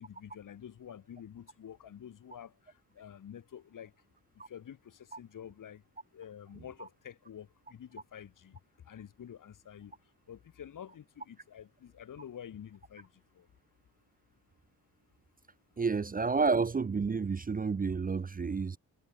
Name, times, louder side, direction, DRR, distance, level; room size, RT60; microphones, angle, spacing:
voice 1, 0.0-3.9 4.5-5.8 6.1-8.6 8.8-10.0 10.3-13.5, left 9 dB, 55° left, 2.3 m, -49 dB
voice 2, 15.8-18.8, right 4 dB, 25° right, 0.7 m, -30 dB
wide cardioid pair, 145°, 37 cm